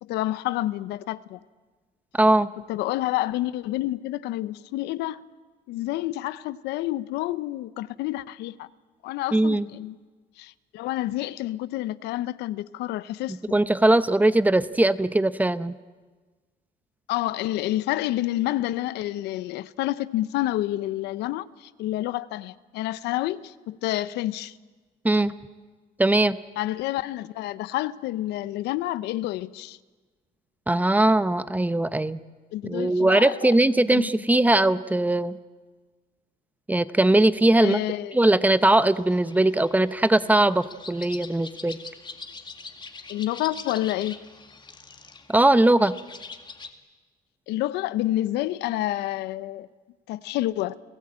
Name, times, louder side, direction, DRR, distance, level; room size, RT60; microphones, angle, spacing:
voice 1, 0.0-1.4 2.7-5.2 5.7-8.7 9.0-10.0 10.4-13.6 17.1-24.5 26.6-29.8 32.5-33.5 33.9-34.1 37.6-38.2 43.1-44.2 47.5-49.7 50.1-50.8, left 15 dB, 85° left, 0.8 m, -29 dB
voice 2, 2.1-2.5 9.3-9.7 13.5-15.7 25.0-25.3 26.0-26.4 30.7-32.2 32.6-35.4 36.7-37.8 38.1-41.8 45.3-45.9, right 1 dB, 10° right, 0.8 m, -20 dB
sound 1, 38.6-46.7, left 4 dB, 25° left, 2.1 m, -43 dB
29.5 x 17.0 x 8.7 m
cardioid pair, 110°, 17 cm